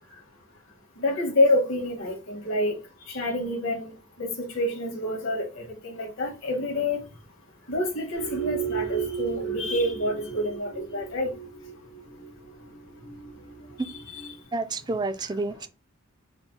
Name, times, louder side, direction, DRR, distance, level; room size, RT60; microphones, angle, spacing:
voice 1, 1.0-2.7 3.1-3.9 4.2-7.0 7.7-11.3 14.1-14.2, left 1 dB, 65° left, 1.6 m, -27 dB
sound 1, 8.1-14.3, right 8 dB, 90° right, 1.9 m, -34 dB
voice 2, 14.5-15.7, right 3 dB, 20° right, 0.3 m, -29 dB
4.4 x 2.2 x 4.0 m
head